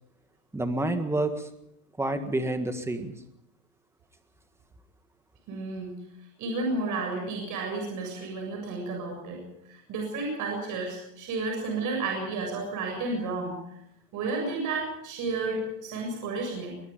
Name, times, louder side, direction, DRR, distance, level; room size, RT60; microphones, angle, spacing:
voice 1, 0.5-1.5 2.0-3.1, right 2 dB, 5° right, 8 dB, 1.7 m, -28 dB
voice 2, 5.5-5.9 6.4-9.4 9.7-13.6 14.1-16.7, right 3 dB, 40° right, 1 dB, 7.4 m, -32 dB
22.5 x 22.0 x 5.3 m, 0.78 s
supercardioid pair, 160°, 47 cm